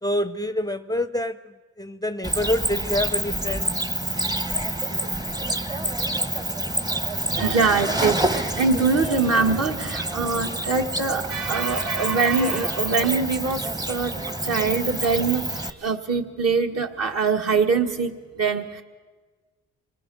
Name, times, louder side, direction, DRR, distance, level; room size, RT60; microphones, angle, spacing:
voice 1, 0.0-1.4 1.8-3.7, left 1 dB, 15° left, 12 dB, 0.6 m, -26 dB
Cricket, 2.2-15.7, right 1 dB, 15° right, 0.9 m, -28 dB
voice 2, 7.3-18.8, right 4 dB, 55° right, 3 dB, 2.0 m, -23 dB
26.5 x 20.0 x 6.4 m, 1.4 s
cardioid pair, 90°, 30 cm